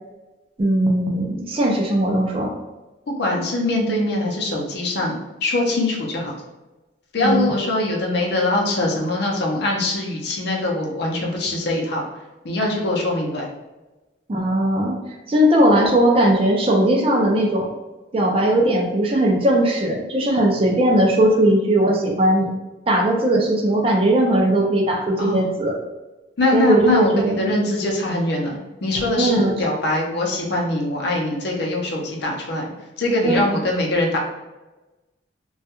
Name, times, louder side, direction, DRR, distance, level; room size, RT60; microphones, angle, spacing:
voice 1, 0.6-2.5 7.2-7.5 14.3-15.0 15.3-17.7 18.1-22.5 22.9-25.7 26.5-27.6 29.2-29.5 33.2-33.4, right 1 dB, 30° right, 0 dB, 0.4 m, -18 dB
voice 2, 3.2-6.4 7.1-12.0 12.4-13.5 25.2-25.5 26.4-32.7 33.0-34.2, left 2 dB, 60° left, -1 dB, 0.6 m, -22 dB
2.3 x 2.1 x 2.8 m, 1.1 s
head